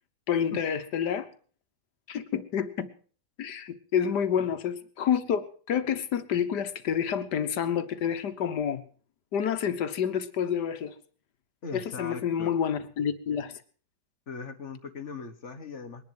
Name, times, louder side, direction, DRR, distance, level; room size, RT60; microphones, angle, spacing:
voice 1, 0.3-1.3 2.1-2.9 3.4-8.8 9.3-10.9 11.7-13.6, left 8 dB, 75° left, 11 dB, 1.8 m, -28 dB
voice 2, 11.6-12.5 14.3-16.1, left 4 dB, 45° left, 9 dB, 1.5 m, -39 dB
21.0 x 11.0 x 5.9 m, 0.43 s
omnidirectional pair, 1.8 m